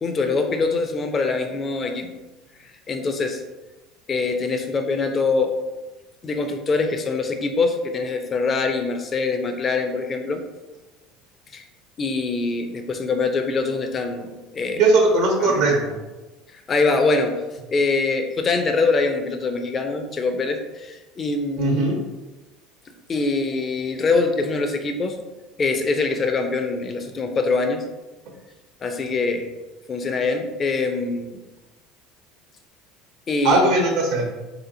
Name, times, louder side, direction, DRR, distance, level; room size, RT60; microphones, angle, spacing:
voice 1, 0.0-2.1 2.9-3.4 4.1-5.6 6.2-10.4 11.5-11.6 12.0-14.8 15.4-15.6 16.7-17.4 17.7-21.9 23.1-25.2 25.6-27.8 28.8-29.5 29.9-31.4 33.3-33.6, left 3 dB, 35° left, 5 dB, 0.5 m, -23 dB
voice 2, 14.7-15.9 21.6-22.0 33.4-34.3, right 2 dB, 75° right, 0 dB, 0.6 m, -19 dB
3.5 x 2.8 x 2.7 m, 1.1 s
supercardioid pair, 95°, 0 cm